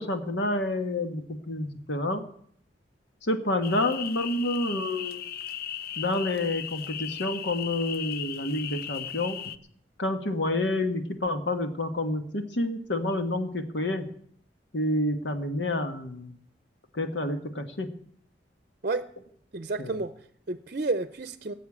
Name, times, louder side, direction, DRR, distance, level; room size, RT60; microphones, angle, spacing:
voice 1, 0.0-2.2 3.2-5.2 6.0-9.4 10.0-14.1 14.7-16.3 16.9-17.9 19.8-20.0, left 1 dB, 85° left, 7 dB, 1.4 m, -29 dB
sound 1, 3.6-9.6, left 9 dB, 60° left, 0.7 m, -37 dB
voice 2, 19.5-21.5, right 3 dB, 50° right, 12 dB, 0.6 m, -31 dB
15.5 x 7.9 x 8.6 m, 0.63 s
head